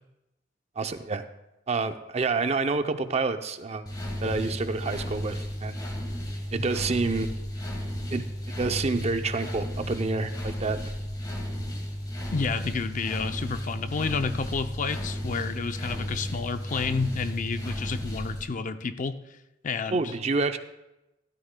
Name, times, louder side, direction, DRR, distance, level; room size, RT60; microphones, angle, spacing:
voice 1, 0.8-1.2 1.7-3.9 4.2-5.9 6.5-7.3 8.1-10.8 19.9-20.6, right 3 dB, 35° right, 9 dB, 0.5 m, -28 dB
sound 1, 3.9-18.4, equal, 20° left, 1.5 m, -34 dB
voice 2, 12.3-19.2 19.6-20.1, left 4 dB, 45° left, 10 dB, 0.5 m, -30 dB
14.5 x 13.0 x 2.2 m, 0.94 s
head